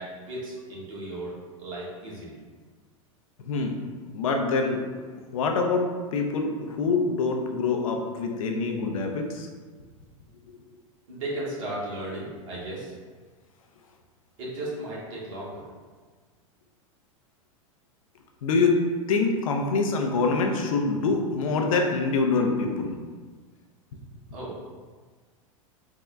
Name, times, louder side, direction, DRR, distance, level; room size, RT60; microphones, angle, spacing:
voice 1, 0.0-1.3 1.6-2.4 11.1-12.9 14.4-15.7 24.3-24.6, right 1 dB, 65° right, -6 dB, 1.4 m, -35 dB
voice 2, 3.4-3.8 4.1-4.8 5.3-5.9 6.1-9.5 18.4-18.8 19.1-23.0, left 4 dB, 75° left, 3 dB, 0.6 m, -25 dB
3.6 x 2.1 x 3.5 m, 1.5 s
hypercardioid pair, 100°, 18 cm